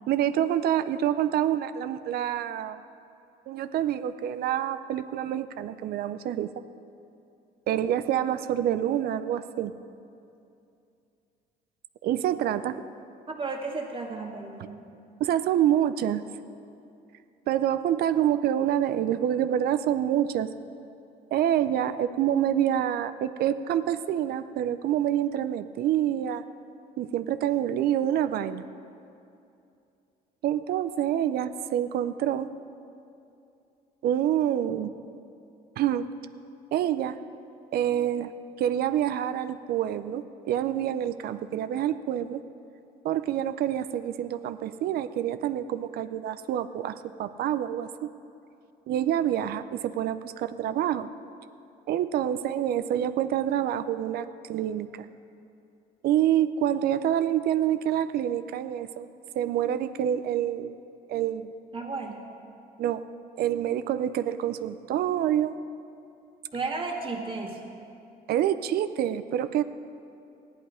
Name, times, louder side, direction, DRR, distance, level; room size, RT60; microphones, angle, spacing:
voice 1, 0.1-2.8 3.5-6.5 7.7-9.7 12.0-12.8 15.2-16.2 17.5-20.5 21.3-26.4 27.0-28.6 30.4-32.5 34.0-34.9 35.8-36.1 36.7-37.2 37.7-38.3 38.6-42.4 43.0-48.1 48.9-51.1 51.9-55.1 56.0-59.1 59.4-60.8 61.1-61.5 62.8-63.0 63.4-65.5 68.3-69.6, right 11 dB, 65° right, 12 dB, 0.5 m, -27 dB
voice 2, 13.3-14.9 61.7-62.2 66.5-67.7, right 3 dB, 30° right, 0 dB, 1.9 m, -34 dB
15.0 x 10.5 x 5.0 m, 2.6 s
cardioid pair, 110°, 17 cm